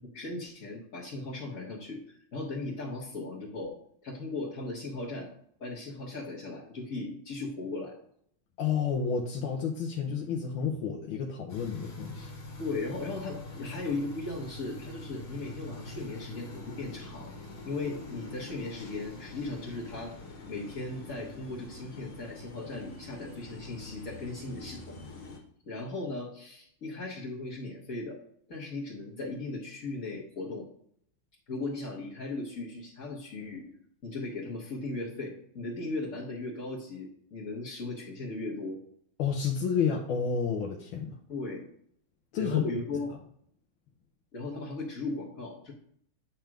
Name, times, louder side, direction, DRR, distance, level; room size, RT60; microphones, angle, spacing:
voice 1, 0.1-3.8 4.0-5.3 5.6-8.0 12.6-17.3 17.6-20.2 20.5-25.0 25.7-28.2 28.5-30.7 31.5-33.6 34.0-38.8 41.3-41.6 42.4-43.2 44.3-45.7, left 2 dB, 45° left, -8 dB, 1.9 m, -37 dB
voice 2, 8.6-12.3 39.2-41.1 42.3-42.7, left 6 dB, 80° left, 0 dB, 1.7 m, -30 dB
sound 1, 11.5-25.4, left 2 dB, 65° left, 2.3 m, -45 dB
9.0 x 3.5 x 6.0 m, 0.65 s
omnidirectional pair, 2.2 m